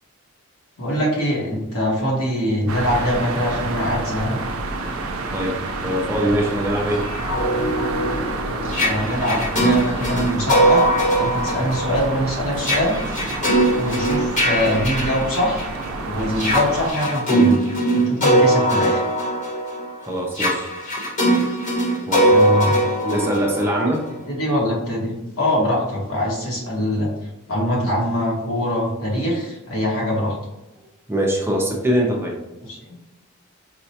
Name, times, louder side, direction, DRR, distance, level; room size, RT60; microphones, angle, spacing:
voice 1, 0.8-4.4 8.8-10.8 11.2-13.0 13.8-15.7 16.0-17.6 17.9-19.0 22.3-22.8 24.3-30.4 32.6-33.0, left 1 dB, 80° left, -3 dB, 1.2 m, -23 dB
sound 1, 2.7-16.9, right 2 dB, 75° right, 0.5 m, -28 dB
voice 2, 5.3-7.0 20.0-20.7 22.1-22.3 23.0-24.1 31.1-32.3, equal, 10° right, -1 dB, 0.5 m, -22 dB
sound 2, 7.0-15.8 16.3-24.1, right 1 dB, 40° left, 1.0 m, -21 dB
4.7 x 2.2 x 2.8 m, 0.96 s
head